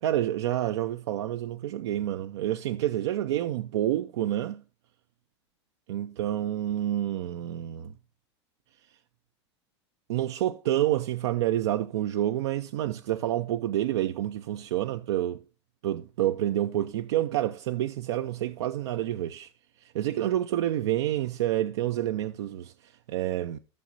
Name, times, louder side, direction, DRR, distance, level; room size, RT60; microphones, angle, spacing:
voice 1, 0.0-4.6 5.9-7.9 10.1-15.4 15.8-19.5 19.8-23.6, right 12 dB, 70° right, 0.5 m, -28 dB
14.0 x 6.4 x 2.6 m
hypercardioid pair, 95°, 15 cm